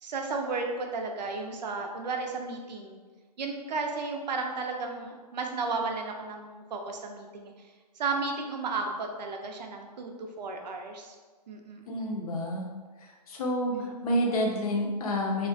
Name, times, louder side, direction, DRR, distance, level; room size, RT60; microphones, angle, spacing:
voice 1, 0.0-3.0 3.4-7.5 8.0-11.2 11.5-11.9 13.7-13.9, right 3 dB, 85° right, 3 dB, 0.5 m, -34 dB
voice 2, 11.9-12.7 13.0-15.5, equal, 60° left, 0 dB, 0.6 m, -29 dB
2.3 x 2.1 x 2.6 m, 1.4 s
hypercardioid pair, 150°, 21 cm